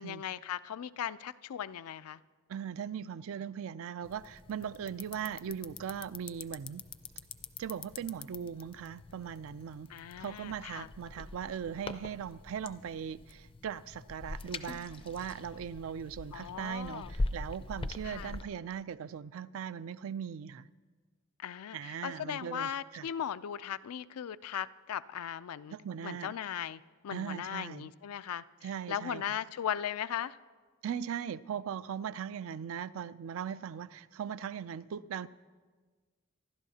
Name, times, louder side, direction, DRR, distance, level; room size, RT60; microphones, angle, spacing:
voice 1, 0.0-2.2 9.9-10.9 16.3-17.1 18.0-18.4 21.4-25.8 26.0-30.4, left 9 dB, 85° left, 0.4 m, -38 dB
voice 2, 2.5-6.9 7.6-9.9 10.2-20.7 21.7-23.1 25.7-26.3 27.1-27.9 28.6-29.2 30.8-35.3, right 8 dB, 65° right, 0.3 m, -39 dB
sound 1, 4.0-18.4, left 2 dB, 25° left, 0.4 m, -43 dB
25.0 x 12.0 x 2.8 m
head